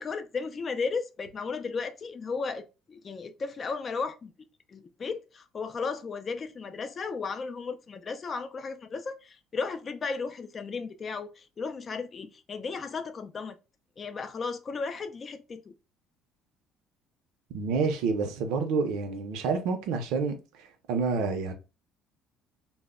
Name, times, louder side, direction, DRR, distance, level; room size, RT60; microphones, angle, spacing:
voice 1, 0.0-4.3 4.7-13.6 14.0-15.7, left 4 dB, 30° left, 0.3 m, -35 dB
voice 2, 17.5-20.4 20.9-21.5, right 4 dB, 80° right, 0.5 m, -28 dB
2.0 x 2.0 x 3.5 m
cardioid pair, 135°, 0 cm